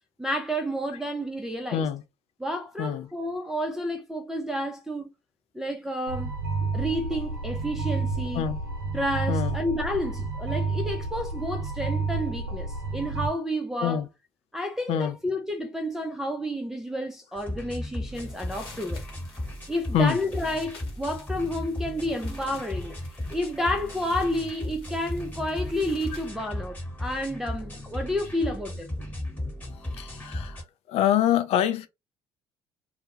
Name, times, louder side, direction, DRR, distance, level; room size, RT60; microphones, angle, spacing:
voice 1, 0.2-1.9 2.4-5.1 5.5-6.3 6.7-8.5 8.9-14.0 14.5-19.0 19.7-23.0 23.3-28.9, equal, 5° right, 0.4 m, -30 dB
voice 2, 1.7-2.0 2.8-3.1 8.3-8.6 9.3-9.6 13.8-14.1 14.9-15.2 19.9-20.2 30.0-30.6 30.9-31.9, left 9 dB, 55° left, 0.5 m, -25 dB
sound 1, 6.1-13.3, right 3 dB, 80° right, 0.5 m, -30 dB
sound 2, 17.4-30.6, left 1 dB, 15° left, 1.2 m, -36 dB
sound 3, 18.0-26.3, left 4 dB, 80° left, 0.9 m, -52 dB
2.2 x 2.0 x 2.8 m
figure-of-eight pair, 50°, 12 cm